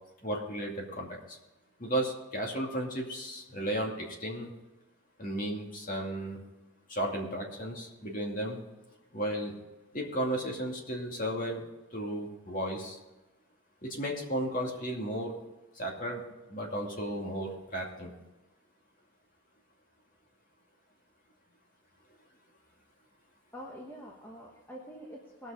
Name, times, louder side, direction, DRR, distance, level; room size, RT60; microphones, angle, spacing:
voice 1, 0.2-1.4 1.8-4.5 5.2-6.4 6.9-8.6 9.1-9.5 9.9-11.7 11.9-13.0 13.8-15.3 15.7-16.2 16.5-18.1, right 1 dB, 40° left, 0 dB, 2.4 m, -34 dB
voice 2, 23.5-25.5, equal, 10° left, -2 dB, 1.2 m, -46 dB
19.0 x 6.5 x 5.0 m, 1.1 s
head